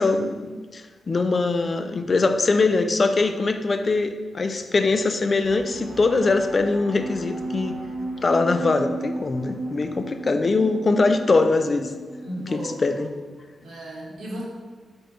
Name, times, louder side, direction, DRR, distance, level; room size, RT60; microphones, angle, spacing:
voice 1, 0.0-7.8 8.2-11.9 12.5-13.1, left 3 dB, 40° left, 8 dB, 0.3 m, -22 dB
sound 1, 5.4-13.0, right 2 dB, 45° right, 0.8 m, -34 dB
voice 2, 12.2-13.1 13.6-14.4, right 1 dB, 85° right, -4 dB, 1.2 m, -35 dB
5.1 x 2.3 x 4.3 m, 1.4 s
cardioid pair, 85°, 0 cm